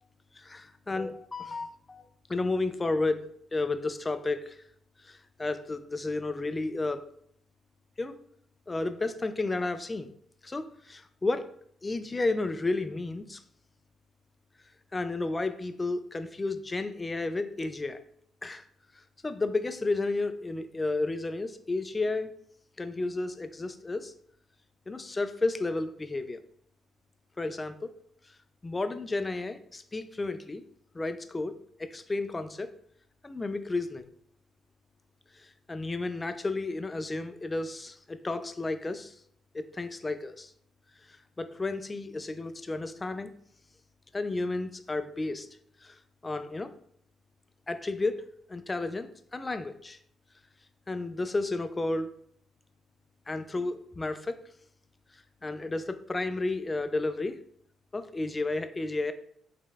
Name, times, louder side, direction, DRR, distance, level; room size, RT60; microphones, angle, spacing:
voice 1, 0.3-2.0 2.3-4.6 5.0-7.0 8.0-8.2 8.7-10.1 10.4-11.5 11.8-13.4 14.9-18.0 18.4-18.6 19.0-22.3 22.8-24.1 24.9-26.4 27.4-27.9 28.6-30.6 30.9-32.7 33.2-34.1 35.3-39.1 39.5-40.5 41.1-43.3 44.1-45.5 45.8-46.7 47.7-50.0 50.9-52.1 53.3-54.4 55.4-57.4 57.9-59.1, left 2 dB, 20° left, 9 dB, 0.4 m, -32 dB
5.0 x 3.1 x 2.3 m, 0.66 s
cardioid pair, 90°, 0 cm